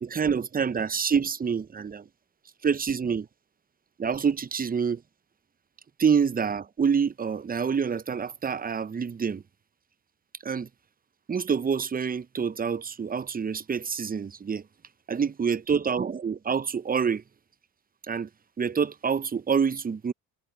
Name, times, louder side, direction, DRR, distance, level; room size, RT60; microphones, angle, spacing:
voice 1, 0.0-2.0 2.6-3.3 4.0-5.0 6.0-9.4 10.4-10.7 11.3-14.6 15.1-17.2 18.1-18.3 18.6-20.1, right 6 dB, 20° right, 0.6 m, -27 dB
supercardioid pair, 65°, 45 cm